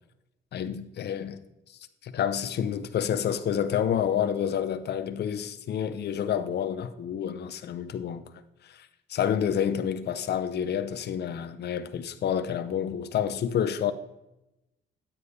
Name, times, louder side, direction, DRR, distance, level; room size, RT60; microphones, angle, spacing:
voice 1, 0.5-1.4 2.0-8.2 8.6-13.9, left 9 dB, 55° left, 0.7 m, -29 dB
9.3 x 8.5 x 3.2 m
cardioid pair, 90°, 20 cm